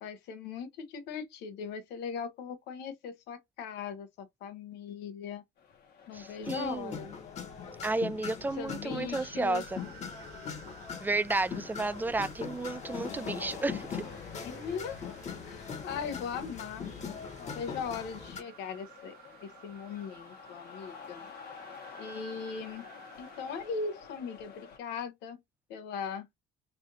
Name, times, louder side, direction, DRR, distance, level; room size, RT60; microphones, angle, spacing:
voice 1, 0.0-5.4 6.1-7.2 8.6-9.6 14.4-15.2 15.4-16.9 17.4-19.1 19.4-21.3 22.0-22.8 23.2-25.4 25.7-26.3, left 6 dB, 90° left, 0.9 m, -39 dB
sound 1, 5.6-24.8, left 6 dB, 70° left, 1.2 m, -51 dB
voice 2, 6.1-7.0 7.8-9.8 11.0-14.1, right 3 dB, 10° right, 0.3 m, -32 dB
sound 2, 6.4-18.4, left 6 dB, 40° left, 1.1 m, -41 dB
sound 3, 8.4-23.7, right 9 dB, 65° right, 0.9 m, -55 dB
3.3 x 2.6 x 3.9 m
cardioid pair, 110°, 17 cm